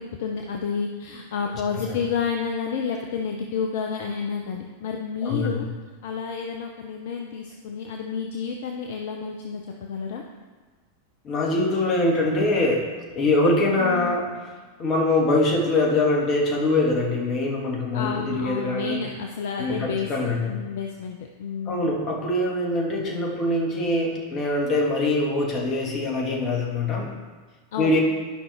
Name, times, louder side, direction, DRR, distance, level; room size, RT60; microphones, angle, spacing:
voice 1, 0.2-5.7 6.0-10.2 13.8-14.2 17.9-20.1 20.5-21.9 27.7-28.0, left 6 dB, 55° left, 2 dB, 0.6 m, -30 dB
voice 2, 5.2-5.7 11.2-12.9 13.2-14.3 14.8-19.0 19.6-20.6 21.7-27.1 27.8-28.0, left 2 dB, 30° left, -1 dB, 1.8 m, -23 dB
11.5 x 5.4 x 3.4 m, 1.3 s
figure-of-eight pair, 90°, 0 cm